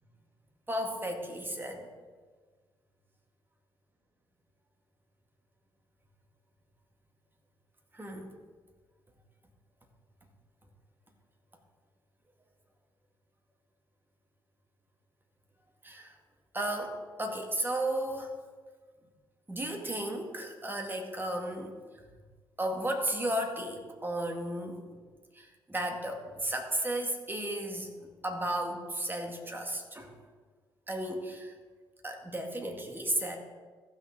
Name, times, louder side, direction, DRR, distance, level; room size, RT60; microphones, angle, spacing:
voice 1, 0.7-1.9 7.9-8.3 15.8-16.2 16.5-18.3 19.5-21.7 22.6-25.0 25.3-30.1 30.9-31.5 32.0-33.4, right 1 dB, 20° right, 3 dB, 2.1 m, -34 dB
15.0 x 6.4 x 3.6 m, 1.5 s
hypercardioid pair, 45°, 11 cm